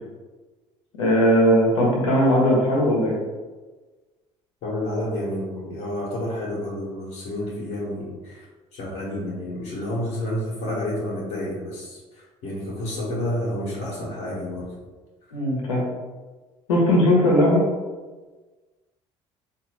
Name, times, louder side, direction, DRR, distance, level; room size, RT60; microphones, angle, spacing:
voice 1, 1.0-3.2 15.3-15.8 16.7-17.6, equal, 90° left, -3 dB, 0.9 m, -18 dB
voice 2, 4.6-8.5 8.7-14.7, left 1 dB, 65° left, -9 dB, 1.1 m, -30 dB
3.7 x 2.6 x 3.0 m, 1.3 s
hypercardioid pair, 60°, 15 cm